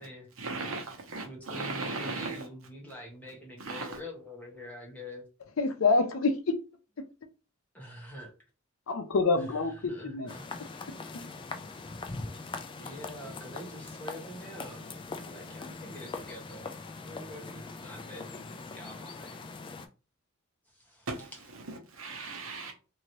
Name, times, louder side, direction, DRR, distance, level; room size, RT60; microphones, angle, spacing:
voice 1, 0.4-2.5 3.6-4.0 21.1-22.7, right 3 dB, 85° right, 0.9 m, -37 dB
voice 2, 1.2-5.3 7.7-8.3 9.9-10.4 12.8-16.8 17.0-19.5 20.7-21.1, equal, 10° left, 1.0 m, -45 dB
voice 3, 5.6-6.6 7.0-7.1 8.9-10.3 11.1-11.2, left 3 dB, 85° left, 0.5 m, -27 dB
sound 1, 10.3-19.9, left 3 dB, 25° left, 0.3 m, -42 dB
2.8 x 2.7 x 3.0 m
head